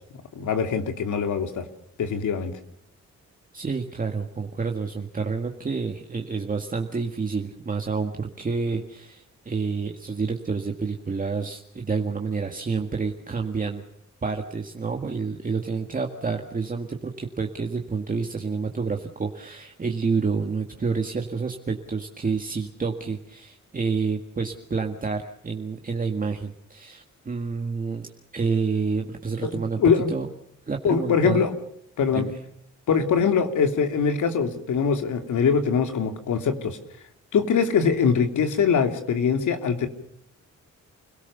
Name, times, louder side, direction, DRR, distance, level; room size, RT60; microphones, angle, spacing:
voice 1, 0.3-1.6 2.0-2.5 29.4-29.5 29.8-30.1 30.8-31.5 32.0-32.3 32.9-36.8 37.3-39.9, left 6 dB, 85° left, 6 dB, 3.1 m, -22 dB
voice 2, 3.5-13.8 14.2-30.3 30.7-31.4 32.1-32.4, right 4 dB, 30° right, 3 dB, 1.9 m, -29 dB
29.5 x 18.0 x 7.0 m, 0.74 s
wide cardioid pair, 135°, 29 cm